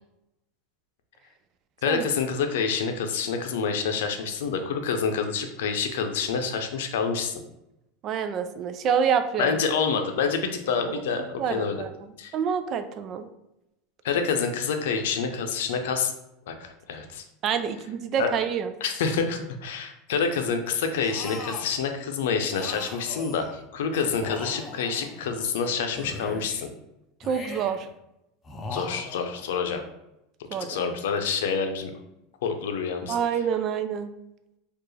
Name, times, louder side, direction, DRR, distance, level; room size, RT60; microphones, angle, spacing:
voice 1, 1.8-7.4 9.4-11.8 12.2-12.4 14.0-16.1 16.5-17.2 18.2-18.3 18.8-26.7 28.7-29.8 30.7-31.9 32.4-33.2, left 5 dB, 80° left, 5 dB, 0.6 m, -27 dB
voice 2, 8.0-9.6 11.4-11.9 12.3-13.3 17.4-18.7 27.3-27.9 30.5-30.9 33.1-34.1, right 7 dB, 45° right, 10 dB, 0.4 m, -27 dB
Old Man Noises, 21.0-21.8 22.5-23.6 24.1-25.5 25.9-26.7 27.2-27.9 28.4-29.5, left 2 dB, 25° left, 0.7 m, -39 dB
4.4 x 2.4 x 3.2 m, 0.87 s
supercardioid pair, 105°, 0 cm